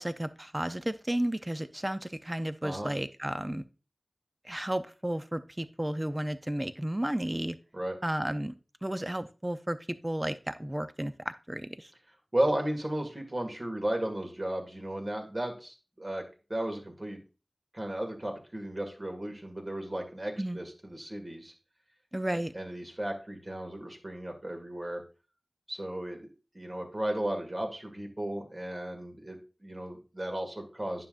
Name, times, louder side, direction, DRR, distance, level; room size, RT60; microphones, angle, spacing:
voice 1, 0.0-3.6 4.4-7.6 8.0-8.5 8.8-11.9 20.4-20.6 22.1-22.5, right 1 dB, 20° right, 0.6 m, -33 dB
voice 2, 12.3-16.2 16.5-17.2 17.7-21.5 22.5-25.0 25.7-26.3 26.5-31.1, right 1 dB, 40° right, 2.1 m, -34 dB
9.6 x 5.8 x 2.5 m
wide cardioid pair, 40°, 0 cm